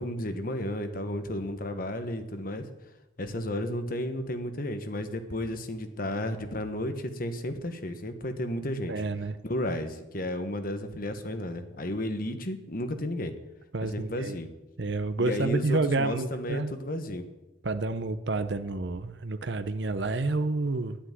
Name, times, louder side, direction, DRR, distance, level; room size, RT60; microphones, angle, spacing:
voice 1, 0.0-2.6 3.2-8.9 9.4-13.3 13.8-14.5 15.2-17.3, left 1 dB, 50° left, 8 dB, 1.3 m, -33 dB
voice 2, 8.9-9.4 13.7-14.4 14.8-16.7 17.6-21.0, right 3 dB, 60° right, 10 dB, 0.7 m, -29 dB
10.0 x 8.8 x 9.5 m, 1.0 s
head